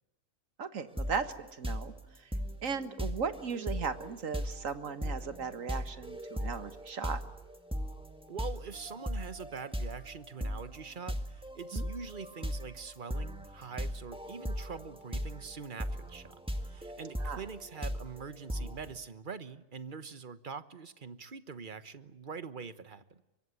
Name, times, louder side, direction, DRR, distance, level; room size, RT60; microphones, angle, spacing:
voice 1, 0.6-2.3 2.6-7.2 11.7-11.9 17.2-17.4, right 6 dB, 65° right, 11 dB, 1.9 m, -37 dB
sound 1, 1.0-1.3 1.6-19.0, equal, 5° right, 1.9 m, -38 dB
voice 2, 8.3-16.4 16.6-23.2, right 5 dB, 40° right, 13 dB, 1.2 m, -44 dB
24.0 x 23.0 x 9.8 m, 0.95 s
omnidirectional pair, 1.5 m